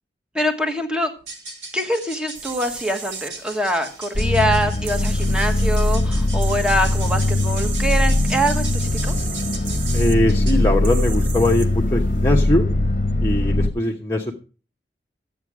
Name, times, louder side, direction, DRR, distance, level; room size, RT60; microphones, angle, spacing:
voice 1, 0.3-1.1 1.7-9.2, equal, 5° right, 5 dB, 1.3 m, -24 dB
sound 1, 1.2-10.7, right 3 dB, 85° right, 4.7 m, -39 dB
sound 2, 2.3-12.3, right 6 dB, 50° right, 1.1 m, -37 dB
sound 3, 4.1-13.7, left 1 dB, 45° left, 1.0 m, -20 dB
voice 2, 9.9-12.6 13.2-14.3, left 1 dB, 20° left, -2 dB, 1.0 m, -21 dB
12.5 x 8.6 x 4.8 m, 0.37 s
head